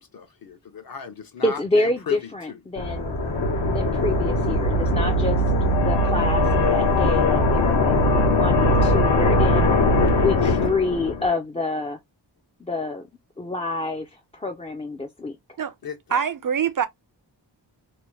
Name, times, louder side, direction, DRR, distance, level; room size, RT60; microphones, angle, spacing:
voice 1, 0.1-2.2 2.5-2.6 15.8-16.2, left 6 dB, 50° left, 0.7 m, -35 dB
voice 2, 1.4-3.2 3.7-5.4 5.8-9.8 10.2-12.0 12.6-13.0 13.4-15.4, left 2 dB, 15° left, 0.3 m, -27 dB
sound 1, 2.8-11.3, left 1 dB, 80° left, 1.0 m, -20 dB
voice 3, 16.1-16.9, right 7 dB, 50° right, 0.4 m, -24 dB
2.9 x 2.1 x 3.0 m
wide cardioid pair, 120°, 44 cm